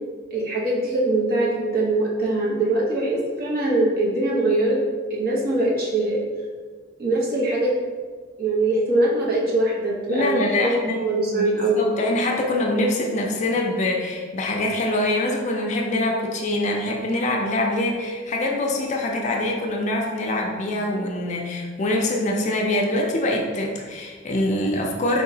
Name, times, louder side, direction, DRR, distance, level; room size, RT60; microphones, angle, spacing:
voice 1, 0.3-4.8 5.1-6.2 7.0-7.7 8.4-10.7 11.0-11.9, right 2 dB, 50° right, -4 dB, 0.8 m, -22 dB
voice 2, 10.1-11.1 11.3-25.2, left 1 dB, 35° left, 0 dB, 0.4 m, -24 dB
3.9 x 2.8 x 2.7 m, 1.5 s
head